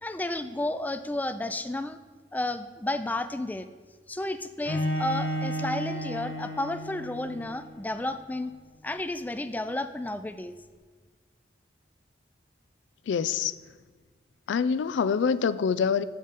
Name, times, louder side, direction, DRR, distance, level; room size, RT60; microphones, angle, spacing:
voice 1, 0.0-2.0 2.3-3.7 4.1-8.5 8.8-10.5, left 1 dB, 10° left, 0.3 m, -32 dB
Bowed string instrument, 4.6-7.6, equal, 70° left, 1.1 m, -32 dB
voice 2, 13.1-13.5 14.5-16.0, left 6 dB, 85° left, 0.3 m, -25 dB
8.5 x 6.7 x 4.1 m
head